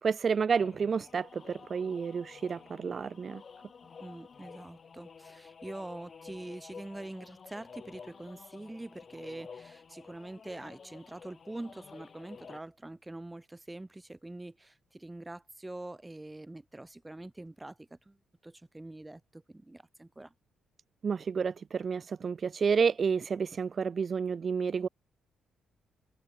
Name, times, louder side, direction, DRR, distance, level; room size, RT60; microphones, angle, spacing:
voice 1, 0.0-3.4 21.0-24.9, right 6 dB, 45° right, 0.3 m, -30 dB
sound 1, 0.6-12.6, left 6 dB, 40° left, 1.0 m, -51 dB
voice 2, 4.0-18.2 18.4-20.3, right 2 dB, 10° right, 2.3 m, -44 dB
cardioid pair, 90°, 0 cm